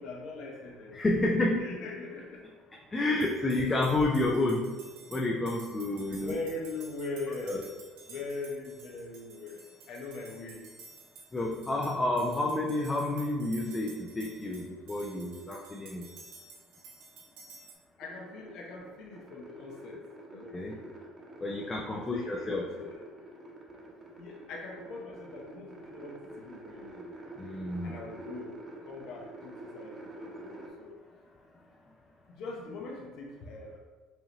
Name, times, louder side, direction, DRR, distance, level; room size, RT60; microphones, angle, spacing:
voice 1, 0.0-1.0 1.4-2.4 3.7-3.8 6.1-7.7 8.1-9.6 9.9-10.6 18.0-20.0 20.3-20.5 22.1-23.0 24.2-27.1 27.8-28.5 28.9-31.0 32.3-33.8, left 3 dB, 65° left, -1 dB, 0.8 m, -41 dB
voice 2, 0.9-1.6 2.9-4.7 5.1-6.4 7.5-7.6 11.3-16.1 20.3-20.8 21.4-22.6 27.4-27.9, left 2 dB, 20° left, -1 dB, 0.4 m, -30 dB
sound 1, 3.2-17.7, right 4 dB, 80° right, 0.8 m, -53 dB
sound 2, 18.0-30.7, right 2 dB, 25° right, 0.9 m, -47 dB
4.8 x 2.6 x 2.9 m, 1.4 s
cardioid pair, 110°, 0 cm